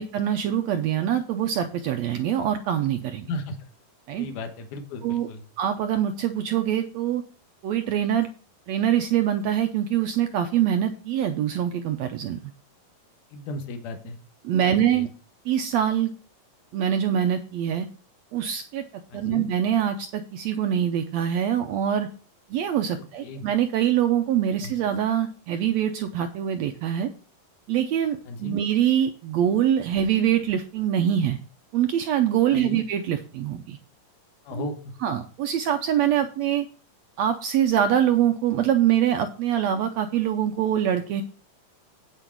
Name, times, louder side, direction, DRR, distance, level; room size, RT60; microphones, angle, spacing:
voice 1, 0.0-3.3 4.1-4.3 5.0-5.3 5.6-7.2 7.6-8.3 8.7-12.4 14.4-15.1 15.4-16.1 16.7-17.9 18.3-18.8 19.1-22.1 22.5-27.1 27.7-31.4 31.7-33.8 34.5-34.7 35.0-36.7 37.2-41.2, right 10 dB, 85° right, 7 dB, 1.5 m, -24 dB
voice 2, 4.2-5.4 13.3-14.2 14.6-15.1 19.1-19.4 23.2-23.5 24.6-24.7 28.3-28.6 32.5-32.8 34.4-34.9, left 2 dB, 70° left, 6 dB, 2.6 m, -35 dB
8.8 x 8.1 x 4.6 m, 0.41 s
omnidirectional pair, 3.9 m